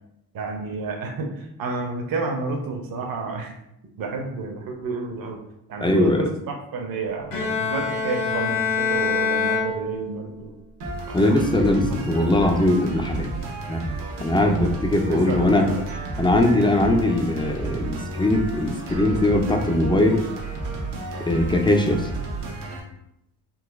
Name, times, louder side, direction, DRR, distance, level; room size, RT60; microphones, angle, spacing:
voice 1, 0.3-3.5 4.0-5.4 5.7-10.5 11.1-11.5 11.9-12.0 15.1-15.8, right 3 dB, 60° right, 2 dB, 0.7 m, -30 dB
voice 2, 5.8-6.3 11.1-13.3 13.7-13.8 14.2-15.7 16.2-20.2 21.3-22.1, left 1 dB, 15° left, 4 dB, 0.3 m, -20 dB
Bowed string instrument, 7.3-10.4, left 5 dB, 55° left, 0.9 m, -25 dB
sound 1, 10.8-22.8, right 3 dB, 85° right, 0.9 m, -32 dB
3.9 x 2.5 x 2.4 m, 0.80 s
cardioid pair, 95°, 40 cm